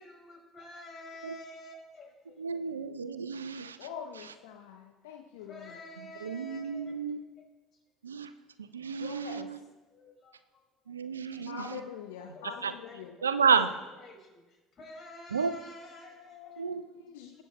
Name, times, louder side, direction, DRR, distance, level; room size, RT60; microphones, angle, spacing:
voice 1, 0.0-2.5 5.4-6.9 9.9-10.9 11.4-11.5 12.2-16.7 17.3-17.4, left 1 dB, 40° left, -1 dB, 5.0 m, -50 dB
voice 2, 2.4-3.9 4.1-4.3 6.0-7.2 8.0-8.3 8.6-9.6 10.9-11.8 12.4-12.7 13.2-13.7 15.3-15.6 16.6-16.9, right 6 dB, 85° right, 13 dB, 0.5 m, -31 dB
voice 3, 3.8-5.7 9.0-9.5 11.5-13.1 16.1-17.4, left 7 dB, 70° left, 4 dB, 0.8 m, -44 dB
22.5 x 8.7 x 3.0 m, 1.1 s
figure-of-eight pair, 60°, 0 cm